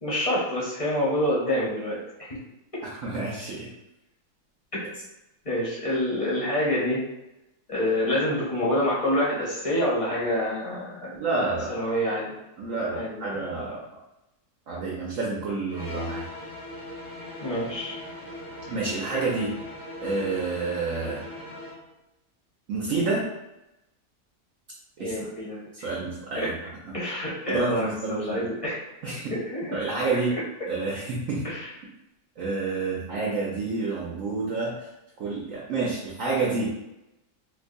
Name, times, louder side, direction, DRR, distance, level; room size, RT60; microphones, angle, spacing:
voice 1, 0.0-2.3 5.4-7.0 7.7-11.2 11.7-12.3 12.9-13.4 17.4-18.0 25.0-25.9 26.4-26.5 26.9-28.8 29.3-29.8 31.4-31.6, left 1 dB, 25° left, -7 dB, 0.9 m, -27 dB
voice 2, 2.9-3.7 11.1-11.7 12.6-13.8 14.7-16.2 18.7-19.6 20.0-21.2 22.7-23.3 25.0-25.1 25.8-26.6 26.8-26.9 27.5-28.5 29.0-29.3 29.7-30.3 30.7-31.5 32.4-34.7 35.2-36.7, right 3 dB, 65° right, -5 dB, 0.9 m, -29 dB
sound 1, 15.7-21.8, left 1 dB, 75° left, 2.2 m, -39 dB
4.4 x 2.2 x 2.6 m, 0.93 s
omnidirectional pair, 1.7 m